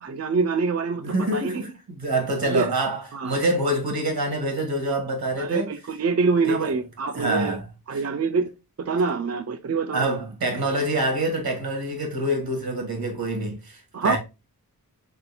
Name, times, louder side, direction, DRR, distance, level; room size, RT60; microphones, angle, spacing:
voice 1, 0.0-1.6 2.5-2.7 3.1-3.4 5.4-7.6 7.9-8.5 8.8-10.1 13.9-14.2, right 4 dB, 45° right, 0.4 m, -25 dB
voice 2, 1.0-5.7 6.5-6.7 7.1-7.6 7.9-8.0 9.9-14.2, right 1 dB, 80° right, 1.9 m, -26 dB
4.3 x 3.8 x 2.7 m
wide cardioid pair, 95°, 36 cm